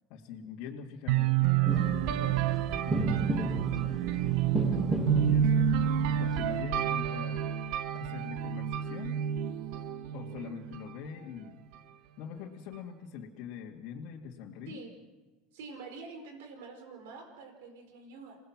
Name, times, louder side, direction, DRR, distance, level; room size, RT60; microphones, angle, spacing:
voice 1, 0.1-2.5 2.9-5.6 6.2-7.5 7.9-9.2 10.1-11.6 12.2-14.8, left 7 dB, 65° left, -4 dB, 2.3 m, -43 dB
sound 1, 1.1-10.9, right 10 dB, 65° right, 1.0 m, -29 dB
sound 2, 1.6-6.6, right 1 dB, 20° right, 6.8 m, -34 dB
voice 2, 10.1-10.6 14.7-14.9 15.5-18.4, right 4 dB, 80° right, 5 dB, 4.5 m, -47 dB
28.0 x 19.0 x 6.1 m, 1.2 s
supercardioid pair, 115°, 0 cm